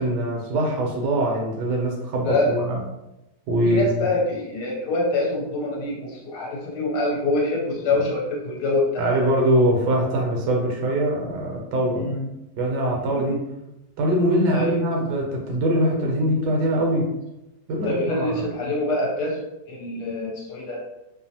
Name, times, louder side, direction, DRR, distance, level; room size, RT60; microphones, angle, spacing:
voice 1, 0.0-2.8 3.5-4.1 7.9-8.1 9.0-12.1 12.6-13.4 14.0-17.1 17.7-18.5, right 1 dB, 75° right, 0 dB, 1.2 m, -23 dB
voice 2, 2.2-2.6 3.6-9.3 12.0-12.3 13.1-13.2 14.5-14.8 17.8-19.4 19.7-20.8, left 2 dB, 70° left, -3 dB, 1.2 m, -25 dB
3.0 x 2.0 x 2.7 m, 0.93 s
omnidirectional pair, 2.0 m